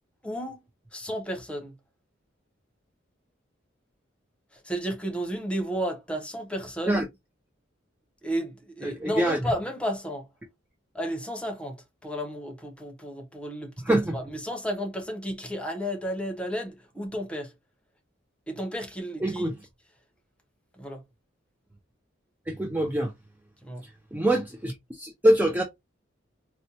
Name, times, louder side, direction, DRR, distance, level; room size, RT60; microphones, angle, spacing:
voice 1, 0.2-0.6 0.9-1.7 4.5-7.1 8.2-10.3 10.9-17.5 18.5-19.5 20.7-21.0 23.6-23.8, equal, 5° left, 0.8 m, -33 dB
voice 2, 8.8-9.4 13.8-14.1 19.2-19.5 22.5-23.1 23.8-25.6, right 1 dB, 10° right, 0.4 m, -25 dB
4.1 x 2.2 x 2.8 m
head